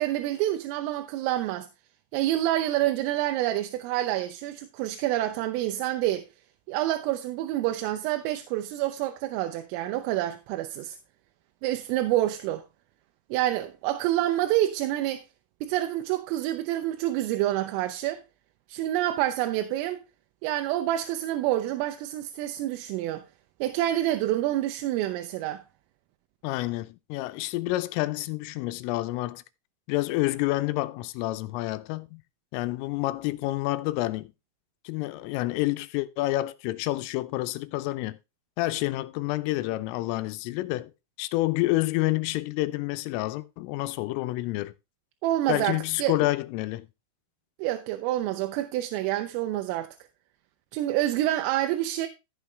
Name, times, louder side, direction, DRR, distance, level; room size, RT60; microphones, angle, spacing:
voice 1, 0.0-1.7 2.1-6.3 6.7-11.0 11.6-12.6 13.3-15.2 15.6-18.2 18.7-20.0 20.4-23.2 23.6-25.6 45.2-46.2 47.6-50.0 50.7-52.1, right 14 dB, 85° right, 3.4 m, -27 dB
voice 2, 26.4-29.4 29.9-32.2 32.5-34.3 34.9-38.2 38.6-40.9 41.2-44.7 45.5-46.9, left 18 dB, 85° left, 3.3 m, -28 dB
15.0 x 6.4 x 3.3 m
omnidirectional pair, 5.8 m